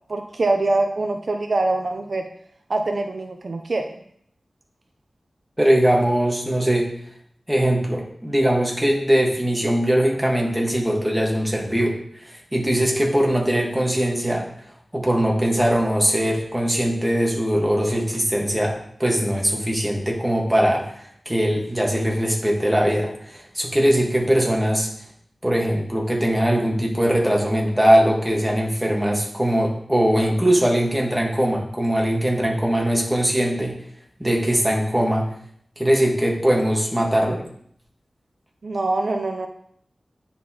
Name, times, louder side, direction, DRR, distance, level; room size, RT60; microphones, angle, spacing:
voice 1, 0.1-2.3 2.7-4.0 38.6-39.5, right 2 dB, 60° right, 5 dB, 0.5 m, -24 dB
voice 2, 5.6-6.9 7.5-14.5 14.9-24.9 25.4-33.8 34.2-35.3 35.8-37.4, equal, 10° right, -1 dB, 1.4 m, -21 dB
10.0 x 4.2 x 2.9 m, 0.66 s
wide cardioid pair, 85°, 0 cm